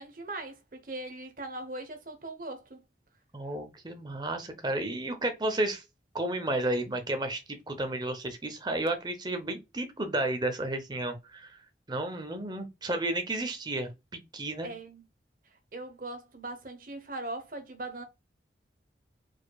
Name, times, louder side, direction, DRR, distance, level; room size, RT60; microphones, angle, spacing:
voice 1, 0.0-2.8 14.6-15.0 15.7-18.0, right 2 dB, 50° right, 1.0 m, -40 dB
voice 2, 3.3-5.8 6.1-11.6 11.9-14.7, right 1 dB, 25° right, 0.8 m, -32 dB
4.7 x 4.4 x 2.3 m
head